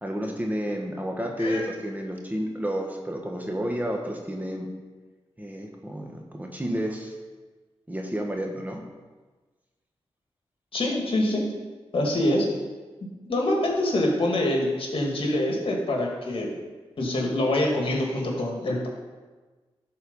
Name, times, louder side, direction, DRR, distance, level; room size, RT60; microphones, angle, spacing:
voice 1, 0.0-4.7 5.4-7.1 7.9-8.8, equal, 15° right, 1 dB, 1.4 m, -30 dB
voice 2, 10.7-11.4 11.9-12.5 13.3-16.5 17.0-18.9, left 1 dB, 60° left, -1 dB, 2.1 m, -25 dB
11.0 x 4.5 x 5.5 m, 1.3 s
cardioid pair, 60°, 10 cm